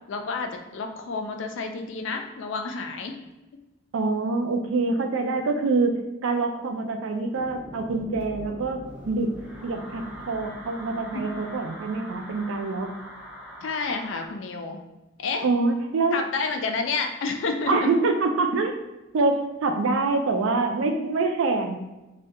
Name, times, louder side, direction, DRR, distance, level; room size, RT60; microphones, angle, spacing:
voice 1, 0.1-3.1 4.7-4.9 11.1-11.3 13.6-14.8 15.2-15.5 16.1-17.9, left 4 dB, 60° left, 5 dB, 0.4 m, -30 dB
voice 2, 3.9-9.3 9.6-12.9 15.4-16.2 17.7-18.7 19.1-21.8, right 3 dB, 65° right, 4 dB, 0.4 m, -25 dB
sound 1, 7.3-14.3, equal, 5° right, 0.4 m, -42 dB
2.7 x 2.2 x 3.5 m, 1.0 s
head